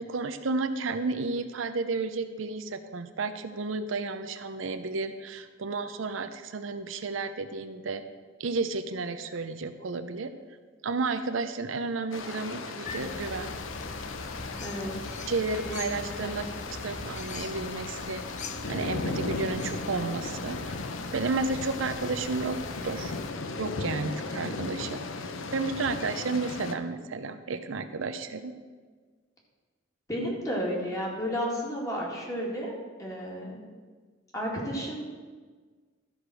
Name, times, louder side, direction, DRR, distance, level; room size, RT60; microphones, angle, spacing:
voice 1, 0.0-8.0 8.4-10.3 10.8-13.5 15.3-16.4 16.8-18.2 18.7-20.8 21.1-22.6 22.8-23.1 23.6-25.0 25.5-28.6, right 3 dB, 75° right, 9 dB, 0.6 m, -32 dB
sound 1, 12.1-26.7, left 3 dB, 80° left, 0.7 m, -37 dB
sound 2, 12.8-23.3, left 3 dB, 40° left, 0.6 m, -41 dB
voice 2, 14.6-15.2 15.6-16.4 24.3-24.4 30.1-32.7 33.0-33.6 34.3-35.1, equal, 15° left, -3 dB, 2.2 m, -33 dB
13.0 x 5.0 x 6.2 m, 1.5 s
head